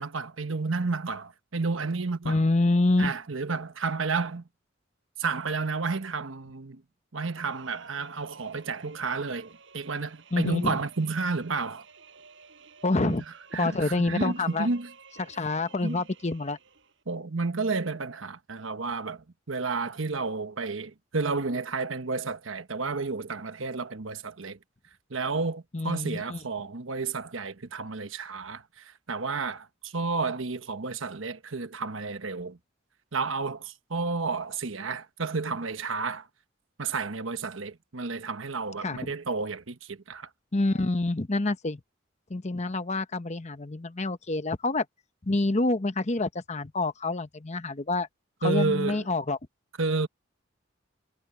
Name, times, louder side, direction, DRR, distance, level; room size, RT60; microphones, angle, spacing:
voice 1, 0.0-2.4 3.0-4.4 5.2-6.8 7.1-11.8 13.0-13.2 13.5-14.9 15.8-16.0 17.1-24.6 25.1-32.6 33.1-36.3 36.8-40.3 48.4-49.0 49.8-50.1, right 4 dB, 85° right, 1.2 m, -31 dB
voice 2, 2.2-3.1 10.3-10.7 12.8-13.2 13.5-14.7 15.2-16.6 25.7-26.4 38.8-39.1 40.5-41.8 42.3-44.9 45.2-48.1 48.4-49.4, left 2 dB, 35° left, 1.0 m, -27 dB
sound 1, 7.2-17.0, right 5 dB, 65° right, 6.9 m, -53 dB
head